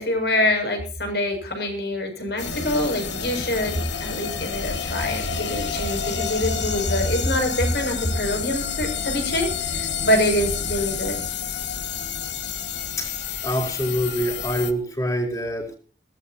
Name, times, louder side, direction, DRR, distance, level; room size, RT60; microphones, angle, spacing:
voice 1, 0.0-11.2, left 1 dB, 65° left, 4 dB, 6.9 m, -25 dB
sound 1, 2.4-14.7, left 7 dB, 85° left, 2.0 m, -29 dB
voice 2, 13.4-15.8, equal, 20° left, 3 dB, 5.4 m, -25 dB
22.0 x 18.5 x 2.9 m, 0.39 s
head